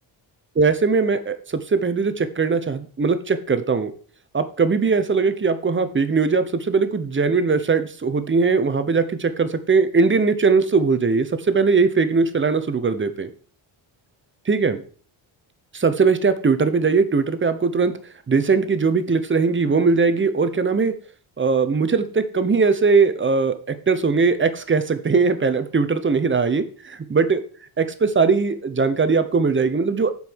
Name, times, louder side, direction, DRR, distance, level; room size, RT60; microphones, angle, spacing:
voice 1, 0.6-1.3 1.7-3.9 4.3-13.3 14.5-14.8 15.7-17.9 18.3-20.9 21.4-27.4 27.8-30.1, right 4 dB, 25° right, 11 dB, 0.8 m, -20 dB
7.5 x 5.6 x 6.2 m, 0.42 s
cardioid pair, 135°, 49 cm